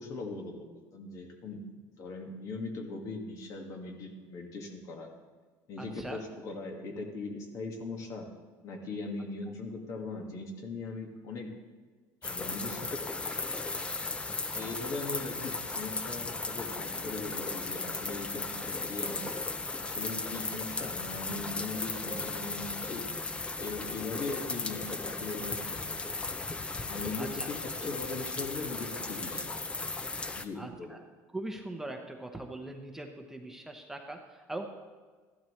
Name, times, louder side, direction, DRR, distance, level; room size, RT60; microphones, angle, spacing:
voice 1, 0.0-5.1 5.7-8.3 8.6-11.5 12.2-13.9 14.6-19.2 19.8-23.1 23.6-26.1 26.9-29.7 30.4-31.0, left 3 dB, 55° left, 2 dB, 1.9 m, -40 dB
voice 2, 5.8-6.2 14.4-14.7 27.2-27.5 30.2-31.0 31.3-34.7, right 2 dB, 5° right, 3 dB, 0.9 m, -41 dB
sound 1, 12.2-30.4, left 3 dB, 15° left, 0.6 m, -36 dB
14.0 x 12.0 x 3.2 m, 1.4 s
cardioid pair, 125°, 7 cm